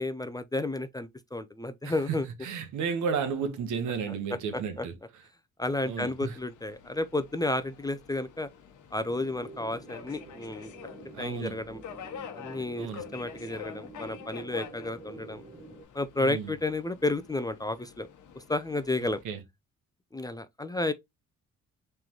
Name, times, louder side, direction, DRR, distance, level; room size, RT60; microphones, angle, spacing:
voice 1, 0.0-2.3 4.8-4.9 5.6-8.5 8.9-10.7 11.2-11.8 12.4-15.4 15.9-18.1 18.5-19.2 20.1-20.9, left 2 dB, 15° left, 0.4 m, -32 dB
voice 2, 1.8-4.9 5.8-6.4 11.1-11.6 12.8-13.1 16.2-16.5 19.2-19.4, right 6 dB, 75° right, 1.2 m, -33 dB
Subway metro underground, 5.6-19.2, left 8 dB, 80° left, 1.1 m, -48 dB
sound 1, 9.0-15.8, right 3 dB, 20° right, 1.3 m, -48 dB
3.7 x 3.4 x 3.0 m
cardioid pair, 90°, 30 cm